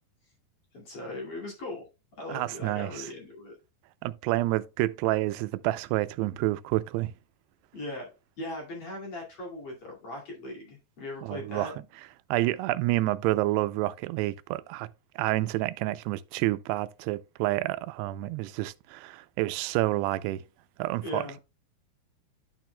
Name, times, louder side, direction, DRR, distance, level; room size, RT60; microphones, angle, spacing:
voice 1, 0.7-1.9 2.2-3.6 7.7-8.1 8.4-11.8 21.0-21.4, left 2 dB, 40° left, 2.9 m, -39 dB
voice 2, 2.3-3.1 4.0-7.1 11.2-11.7 12.3-14.9 15.2-20.4 20.8-21.4, right 17 dB, 85° right, 2.6 m, -29 dB
11.5 x 6.0 x 2.2 m
omnidirectional pair, 4.7 m